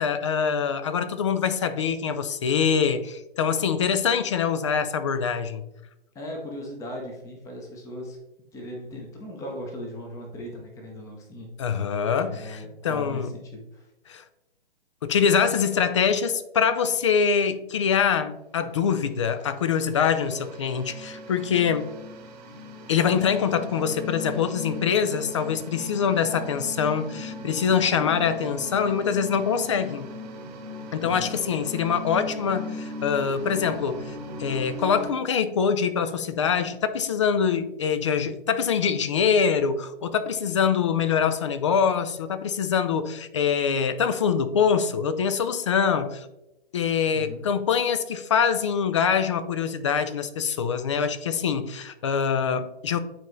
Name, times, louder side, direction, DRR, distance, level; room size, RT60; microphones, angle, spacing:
voice 1, 0.0-5.6 11.6-13.3 14.1-14.2 15.0-21.9 22.9-30.1 30.9-46.3 46.7-53.0, left 7 dB, 30° left, 11 dB, 0.4 m, -24 dB
voice 2, 6.1-8.2 8.5-11.5 12.2-13.9 31.0-31.3 47.1-47.4, left 1 dB, 10° left, 1 dB, 0.9 m, -38 dB
sound 1, 19.5-35.1, left 1 dB, 40° right, 1.0 m, -38 dB
9.0 x 4.1 x 3.1 m, 0.91 s
figure-of-eight pair, 130°, 31 cm